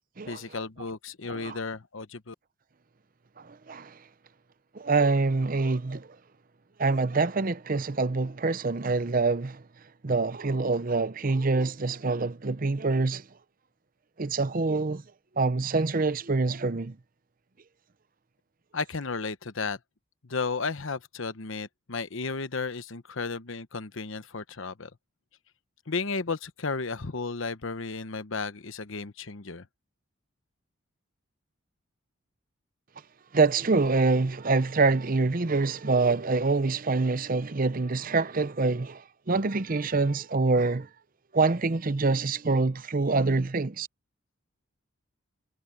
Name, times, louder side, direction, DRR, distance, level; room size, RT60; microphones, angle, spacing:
voice 1, 0.2-2.3 18.7-19.8 20.2-24.9 25.9-29.7, left 4 dB, 70° left, 1.0 m, -33 dB
voice 2, 3.4-4.0 4.7-6.1 6.8-9.6 10.0-13.2 14.2-15.0 15.4-17.0 33.3-40.9 41.3-43.9, right 3 dB, 45° right, 0.7 m, -25 dB
head